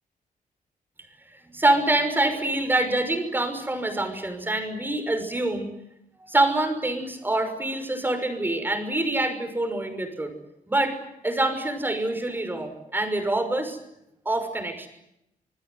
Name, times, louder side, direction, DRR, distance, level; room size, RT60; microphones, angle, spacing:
voice 1, 1.5-5.7 6.3-10.3 10.7-11.0 11.2-13.8 14.3-14.9, right 2 dB, 15° right, 7 dB, 5.9 m, -25 dB
27.5 x 20.0 x 9.5 m, 0.83 s
cardioid pair, 135°, 14 cm